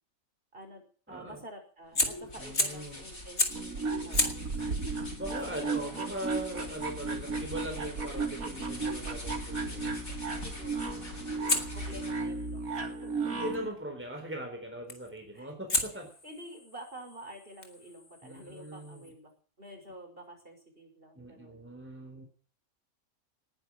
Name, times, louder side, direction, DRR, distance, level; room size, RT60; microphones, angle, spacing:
voice 1, 0.5-4.6 5.4-6.0 10.4-13.1 15.3-15.5 16.2-19.3 19.6-21.6, right 1 dB, 40° right, 4 dB, 6.0 m, -49 dB
voice 2, 1.1-1.4 2.4-3.0 5.2-10.0 10.9-11.4 11.9-12.0 13.2-16.1 18.2-19.1 21.2-22.3, equal, 10° right, 3 dB, 4.0 m, -40 dB
Fire, 1.8-2.9 3.4-3.7 4.1-9.0 11.5-13.6 14.9-15.2 15.7-19.1, left 3 dB, 50° left, 3.0 m, -36 dB
sound 1, 1.9-12.3, left 1 dB, 75° left, 5.9 m, -44 dB
sound 2, 3.4-13.7, right 4 dB, 80° right, 2.4 m, -35 dB
19.5 x 10.5 x 6.2 m, 0.42 s
omnidirectional pair, 1.4 m